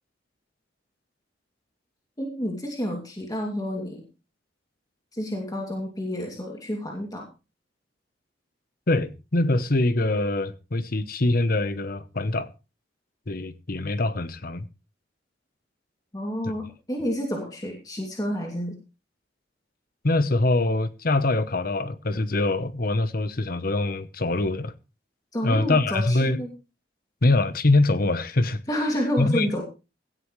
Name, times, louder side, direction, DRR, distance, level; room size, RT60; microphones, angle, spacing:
voice 1, 2.2-4.0 5.1-7.3 16.1-18.8 25.3-26.5 28.7-29.6, equal, 20° left, 2.7 m, -29 dB
voice 2, 8.9-12.5 13.3-14.7 16.4-16.5 20.0-24.7 25.4-26.4 27.2-28.6 29.2-29.5, left 2 dB, 50° left, 1.0 m, -24 dB
17.0 x 13.5 x 3.2 m
head